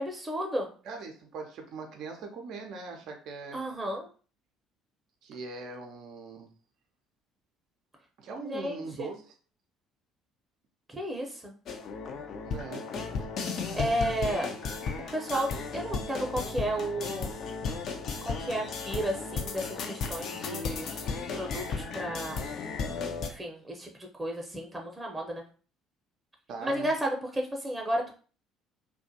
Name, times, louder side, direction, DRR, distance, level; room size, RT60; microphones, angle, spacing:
voice 1, 0.0-0.7 3.5-4.1 8.4-9.1 10.9-11.5 13.7-14.5 15.1-17.3 18.2-20.9 21.3-22.5 23.2-25.4 26.6-28.1, right 1 dB, 15° right, 1 dB, 0.7 m, -33 dB
voice 2, 0.9-3.6 5.2-6.5 8.2-9.3 12.4-12.9 26.5-26.9, right 4 dB, 60° right, 3 dB, 0.5 m, -41 dB
sound 1, 11.7-23.3, left 5 dB, 55° left, 0.4 m, -35 dB
2.4 x 2.2 x 2.6 m, 0.38 s
hypercardioid pair, 55°, 0 cm